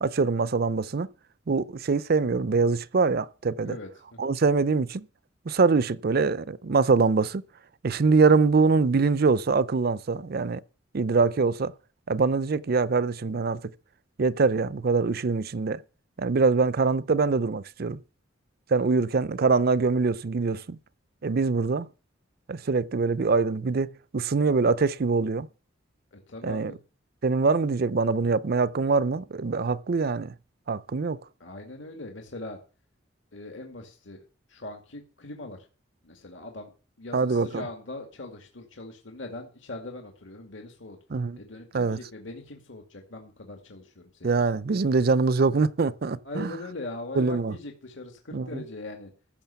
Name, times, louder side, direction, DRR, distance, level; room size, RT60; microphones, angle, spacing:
voice 1, 0.0-1.1 1.5-3.8 4.2-5.0 5.5-7.4 7.8-10.6 10.9-11.7 12.1-13.6 14.2-15.8 16.2-18.0 18.7-20.8 21.2-21.9 22.5-25.5 26.4-26.7 27.2-30.3 30.7-31.2 37.1-37.6 41.1-41.4 41.7-42.0 44.2-46.5 47.2-47.6 48.3-48.6, right 4 dB, 50° right, 0.5 m, -24 dB
voice 2, 3.6-4.3 26.1-26.8 31.4-32.6 33.3-34.2 34.5-35.6 36.0-36.7 37.0-41.0 41.4-44.4 46.2-49.1, left 2 dB, 70° left, 2.2 m, -41 dB
15.0 x 6.3 x 6.9 m
head